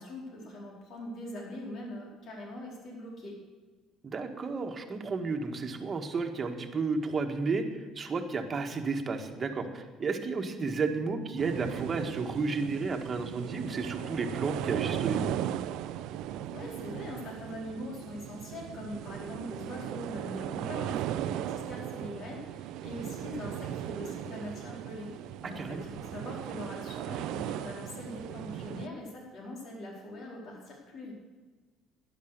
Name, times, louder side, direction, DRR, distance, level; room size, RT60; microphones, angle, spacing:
voice 1, 0.0-3.3 16.5-31.1, left 1 dB, 55° left, -1 dB, 4.5 m, -42 dB
voice 2, 4.0-15.3 25.5-25.8, right 4 dB, 30° right, 4 dB, 1.6 m, -32 dB
sound 1, 11.4-28.9, right 11 dB, 75° right, 0.5 m, -37 dB
12.0 x 10.5 x 6.7 m, 1.3 s
cardioid pair, 115°, 0 cm